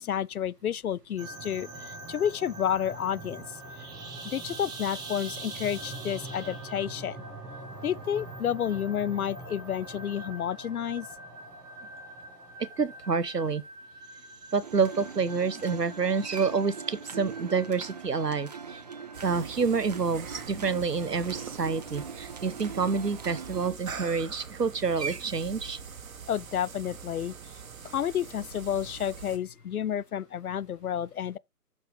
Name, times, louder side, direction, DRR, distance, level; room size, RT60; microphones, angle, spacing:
voice 1, 0.0-3.6 4.2-7.2 7.8-11.1 26.3-27.3 27.9-31.4, left 9 dB, 65° left, 0.5 m, -30 dB
sound 1, 1.2-19.3, right 2 dB, 10° right, 1.4 m, -43 dB
voice 2, 12.6-13.6 14.5-18.8 19.2-25.8, right 5 dB, 90° right, 1.0 m, -28 dB
sound 2, 14.6-23.7, right 6 dB, 25° right, 0.6 m, -42 dB
sound 3, 19.1-29.4, right 6 dB, 60° right, 1.6 m, -43 dB
8.4 x 6.9 x 3.2 m
figure-of-eight pair, 140°, 47 cm